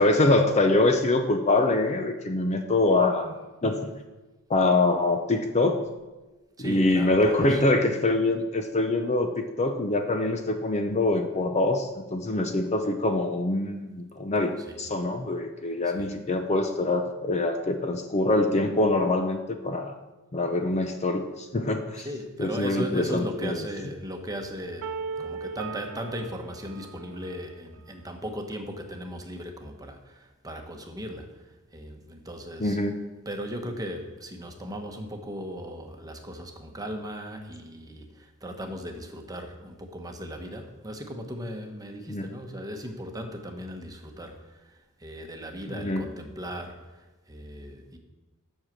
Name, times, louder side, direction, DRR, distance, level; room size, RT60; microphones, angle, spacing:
voice 1, 0.0-3.3 3.6-3.9 4.5-5.8 6.6-14.5 14.8-20.0 20.3-22.1 22.4-23.6 32.6-32.9 42.1-42.3 45.7-46.1, left 2 dB, 30° left, 6 dB, 0.6 m, -24 dB
voice 2, 6.6-7.6 14.6-14.8 15.9-16.1 21.9-32.8 33.2-48.0, equal, 15° right, 3 dB, 1.1 m, -37 dB
sound 1, 24.8-27.8, right 5 dB, 80° right, 0.7 m, -38 dB
7.9 x 6.5 x 7.4 m, 1.1 s
head